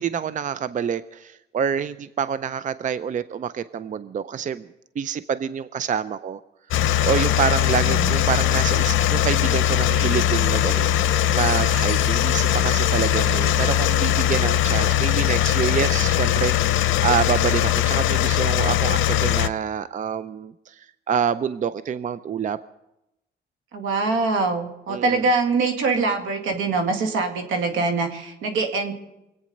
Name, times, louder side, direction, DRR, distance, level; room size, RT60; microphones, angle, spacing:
voice 1, 0.0-4.7 5.0-6.4 7.0-22.6 24.9-25.2, right 7 dB, 40° right, 14 dB, 0.5 m, -27 dB
sound 1, 6.7-19.5, left 11 dB, 75° left, 0.7 m, -20 dB
voice 2, 23.7-28.9, right 3 dB, 85° right, 4 dB, 2.1 m, -24 dB
24.0 x 8.8 x 5.3 m, 0.90 s
cardioid pair, 90°, 20 cm